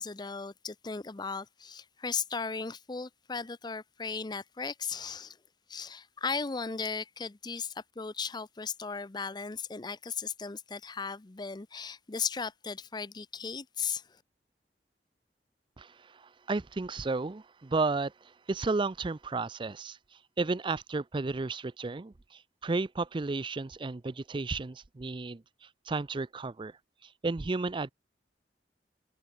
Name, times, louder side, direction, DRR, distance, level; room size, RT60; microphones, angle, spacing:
voice 1, 0.0-5.4 5.7-14.2, left 5 dB, 25° left, 0.6 m, -36 dB
voice 2, 15.8-20.0 20.4-26.7 27.0-27.9, right 3 dB, 30° right, 0.5 m, -33 dB
head